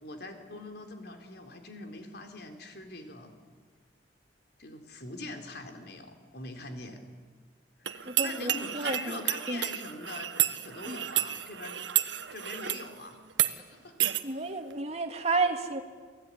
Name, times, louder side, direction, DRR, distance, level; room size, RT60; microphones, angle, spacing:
voice 1, 0.0-3.3 4.6-7.0 7.8-10.3 10.6-11.8 12.3-13.2 13.5-13.9, left 2 dB, 60° left, 5 dB, 3.9 m, -43 dB
sound 1, 7.8-12.9 13.3-13.5 14.0-14.2, right 12 dB, 80° right, 1.3 m, -30 dB
voice 2, 8.1-9.2 9.5-9.6 10.9-11.0 14.2-15.8, right 3 dB, 35° right, 5 dB, 2.3 m, -31 dB
29.0 x 19.5 x 10.0 m, 1.5 s
head